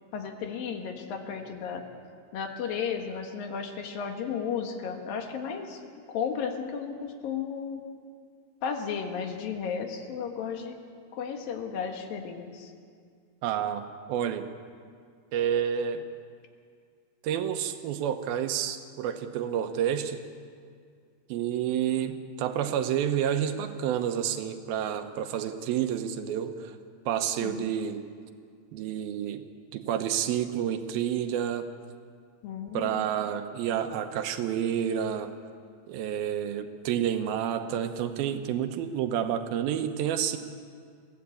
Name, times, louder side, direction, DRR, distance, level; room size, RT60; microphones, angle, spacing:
voice 1, 0.1-1.8 2.3-5.8 6.1-7.8 8.6-10.8 11.1-12.7 27.4-27.7 32.4-33.0, left 6 dB, 70° left, 4 dB, 3.2 m, -34 dB
voice 2, 13.4-13.8 14.1-14.5 15.3-16.1 17.2-20.2 21.3-26.8 27.1-28.0 28.7-29.4 29.7-31.7 32.7-35.3 35.9-40.4, right 9 dB, 85° right, 8 dB, 2.8 m, -29 dB
22.0 x 16.0 x 8.4 m, 2.1 s
omnidirectional pair, 4.3 m